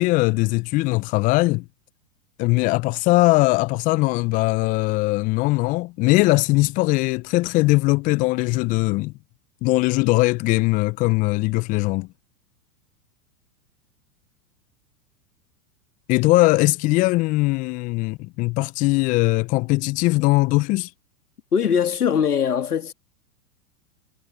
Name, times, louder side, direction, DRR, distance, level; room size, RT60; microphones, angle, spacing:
voice 1, 0.0-1.6 2.4-9.1 9.6-12.1 16.1-20.9, left 22 dB, 20° left, 0.4 m, -20 dB
voice 2, 21.5-22.9, left 7 dB, 80° left, 2.5 m, -21 dB
hypercardioid pair, 100°, 45 cm